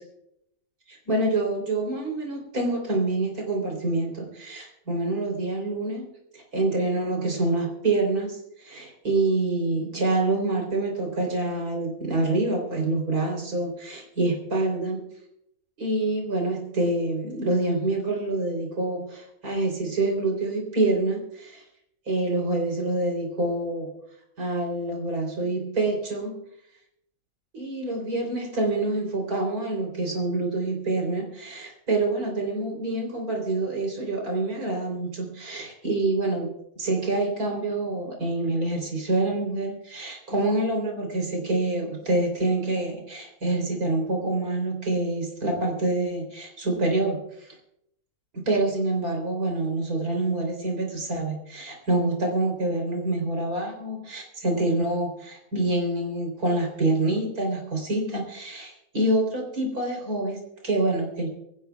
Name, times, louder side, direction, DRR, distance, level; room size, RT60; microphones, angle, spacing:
voice 1, 0.9-6.1 6.3-15.0 15.8-21.6 22.1-23.9 24.4-26.4 27.5-47.6 48.3-61.3, right 2 dB, 75° right, 2 dB, 4.0 m, -26 dB
25.5 x 15.0 x 2.3 m, 0.77 s
omnidirectional pair, 1.6 m